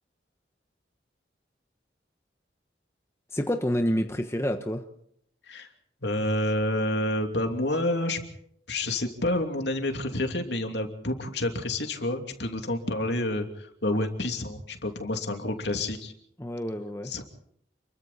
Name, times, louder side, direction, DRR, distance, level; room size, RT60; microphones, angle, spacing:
voice 1, 3.3-4.8 16.4-17.1, equal, 15° left, 5 dB, 1.2 m, -28 dB
voice 2, 6.0-8.2 8.7-16.1 17.0-17.2, left 1 dB, 70° left, 5 dB, 2.8 m, -29 dB
29.0 x 22.5 x 4.3 m, 0.68 s
head